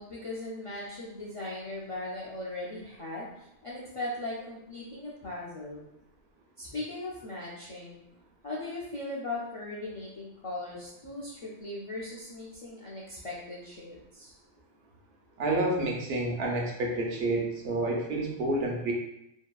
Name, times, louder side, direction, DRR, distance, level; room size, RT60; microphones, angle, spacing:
voice 1, 0.0-5.9 6.6-8.1 8.4-14.4, left 2 dB, 60° left, -6 dB, 0.3 m, -38 dB
voice 2, 15.4-18.9, right 2 dB, 75° right, -1 dB, 0.8 m, -29 dB
2.7 x 2.3 x 2.2 m, 0.82 s
omnidirectional pair, 1.1 m